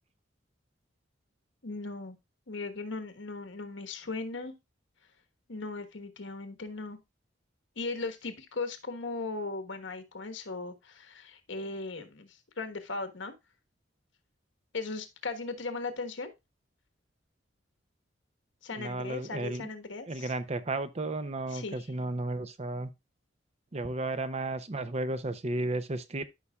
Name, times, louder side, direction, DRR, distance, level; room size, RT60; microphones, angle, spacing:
voice 1, 1.6-2.2 2.5-4.5 5.5-7.0 7.8-13.3 14.7-16.3 18.6-20.3 21.5-21.8, left 3 dB, 85° left, 1.3 m, -38 dB
voice 2, 18.8-19.7 20.1-22.9 23.7-26.2, right 2 dB, 35° right, 0.6 m, -33 dB
13.0 x 5.5 x 2.3 m
head